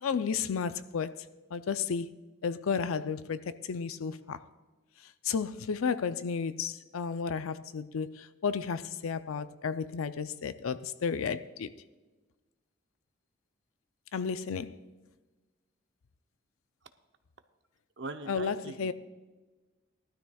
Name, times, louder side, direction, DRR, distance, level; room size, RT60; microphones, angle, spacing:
voice 1, 0.0-1.2 1.5-2.2 2.4-4.4 5.2-11.7 14.1-14.8 18.3-18.9, left 6 dB, 90° left, 0.5 m, -33 dB
voice 2, 18.0-18.9, right 3 dB, 60° right, 0.7 m, -41 dB
18.5 x 12.5 x 2.3 m
head